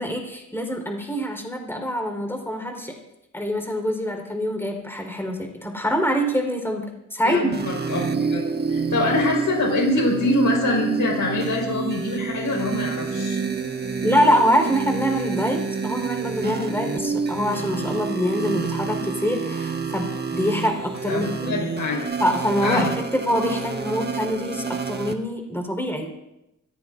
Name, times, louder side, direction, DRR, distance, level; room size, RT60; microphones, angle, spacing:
voice 1, 0.0-3.0 3.3-7.5 14.0-21.6 22.2-26.1, equal, 5° left, 2 dB, 4.3 m, -25 dB
voice 2, 7.2-13.4 21.1-22.1 22.6-22.9, left 2 dB, 70° left, 0 dB, 4.9 m, -24 dB
sound 1, 7.5-25.1, right 5 dB, 30° right, 1.5 m, -28 dB
25.5 x 16.5 x 2.6 m, 0.91 s
cardioid pair, 85°, 32 cm